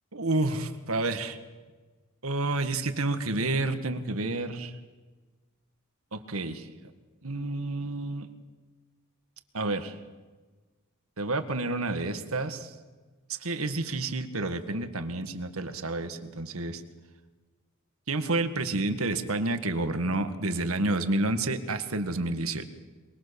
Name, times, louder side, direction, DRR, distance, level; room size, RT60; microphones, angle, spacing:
voice 1, 0.1-1.4 2.2-4.7 6.1-6.7 7.2-8.3 9.5-9.9 11.2-12.7 13.4-16.8 18.1-22.7, right 2 dB, 75° right, 9 dB, 1.8 m, -29 dB
23.5 x 23.5 x 7.0 m, 1.3 s
head